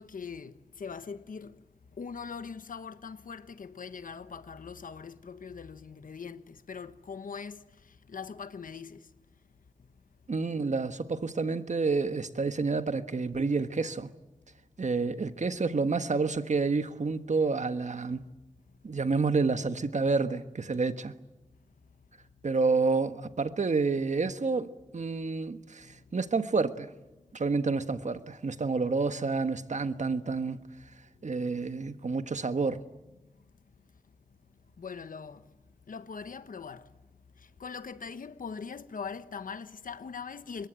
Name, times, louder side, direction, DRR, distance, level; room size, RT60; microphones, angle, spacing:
voice 1, 0.0-9.9 18.7-18.8 22.2-22.3 25.8-26.1 27.2-27.4 31.1-31.3 33.2-35.6 35.9-37.0 37.3-40.7, left 5 dB, 90° left, 1.2 m, -42 dB
voice 2, 10.3-14.1 14.8-18.2 18.8-21.1 22.4-26.9 27.3-30.6 31.2-32.8, right 4 dB, 60° right, 1.5 m, -29 dB
26.0 x 21.5 x 9.0 m
wide cardioid pair, 60°, 14 cm